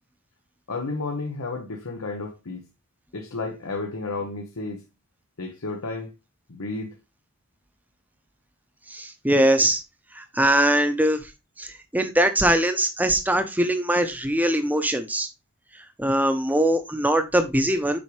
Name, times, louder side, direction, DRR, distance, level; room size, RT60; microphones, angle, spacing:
voice 1, 0.7-2.6 3.1-4.8 5.4-6.1 6.5-7.0, left 3 dB, 85° left, 1.0 m, -32 dB
voice 2, 8.9-9.8 10.2-11.2 11.6-15.3 16.0-18.0, right 1 dB, 10° right, 0.7 m, -22 dB
7.4 x 4.9 x 3.2 m
head